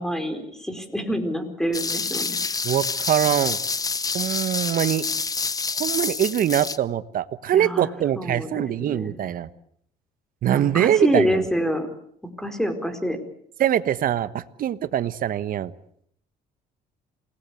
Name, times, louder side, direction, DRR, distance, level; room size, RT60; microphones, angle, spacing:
voice 1, 0.0-2.4 7.5-7.9 8.2-9.2 10.5-11.9 12.4-13.2, equal, 5° left, 8 dB, 4.7 m, -26 dB
sound 1, 1.7-6.8, left 4 dB, 20° left, 1.1 m, -27 dB
voice 2, 2.6-3.6 4.1-5.0 5.8-9.5 10.4-11.4 13.6-15.7, right 11 dB, 55° right, 14 dB, 1.4 m, -23 dB
28.0 x 19.5 x 8.4 m, 0.67 s
cardioid pair, 110°, 17 cm